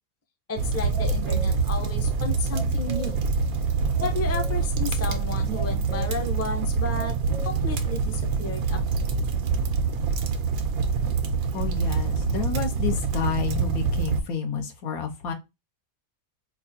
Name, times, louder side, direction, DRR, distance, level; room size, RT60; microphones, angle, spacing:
voice 1, 0.5-3.2 4.0-7.1 7.4-8.8, left 2 dB, 20° left, 0.4 m, -32 dB
sound 1, 0.6-14.2, right 4 dB, 90° right, 1.1 m, -25 dB
sound 2, 0.9-1.6 2.5-3.2 4.0-4.6 5.2-5.3 5.5-6.2 6.6-7.5, equal, 65° left, 1.6 m, -40 dB
voice 2, 11.5-15.3, left 6 dB, 85° left, 1.3 m, -30 dB
4.7 x 2.5 x 2.6 m
omnidirectional pair, 1.5 m